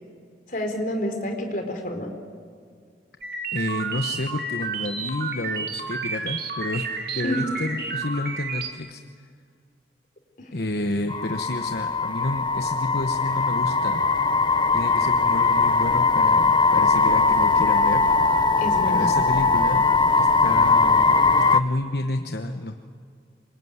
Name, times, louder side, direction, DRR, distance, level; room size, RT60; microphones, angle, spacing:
voice 1, 0.5-2.1 7.2-7.4 10.4-10.5 18.6-19.1, left 1 dB, 45° left, 4 dB, 4.0 m, -28 dB
sound 1, 3.2-8.7, right 4 dB, 55° right, 2.5 m, -31 dB
voice 2, 3.5-6.9 7.1-9.0 10.5-14.0 14.7-18.0 18.9-19.8 20.1-22.8, left 2 dB, 65° left, 6 dB, 1.1 m, -30 dB
sound 2, 11.1-21.6, left 4 dB, 25° left, 0.7 m, -20 dB
26.5 x 23.0 x 9.6 m, 2.2 s
head